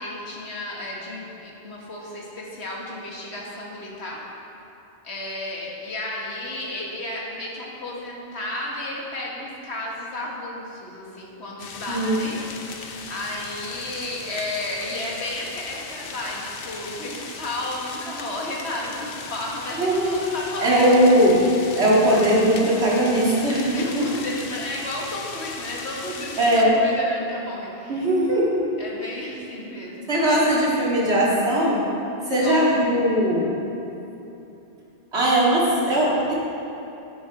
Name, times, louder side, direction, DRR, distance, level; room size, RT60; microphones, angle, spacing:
voice 1, 0.0-4.2 5.0-21.1 23.7-28.1 28.8-30.1 32.3-32.6, left 1 dB, 75° left, -3 dB, 1.9 m, -33 dB
sound 1, 11.6-26.6, left 5 dB, 60° left, 0.9 m, -38 dB
voice 2, 11.9-12.2 19.8-20.1 20.6-21.4 21.7-24.1 26.4-26.8 27.9-28.7 30.1-31.9 32.3-33.5 35.1-36.3, right 1 dB, 75° right, -6 dB, 2.4 m, -19 dB
10.0 x 9.9 x 4.2 m, 3.0 s
omnidirectional pair, 1.1 m